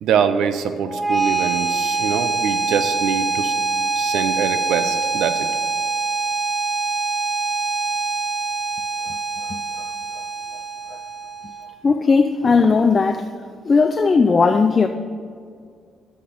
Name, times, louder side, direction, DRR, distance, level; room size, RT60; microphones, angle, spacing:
voice 1, 0.0-3.5 4.0-5.5, right 7 dB, 80° right, 0.6 m, -23 dB
sound 1, 0.9-11.9, right 4 dB, 5° left, 1.6 m, -24 dB
voice 2, 11.8-13.3 13.6-14.9, left 4 dB, 35° left, 0.4 m, -16 dB
7.6 x 6.5 x 6.8 m
cardioid pair, 90°, 0 cm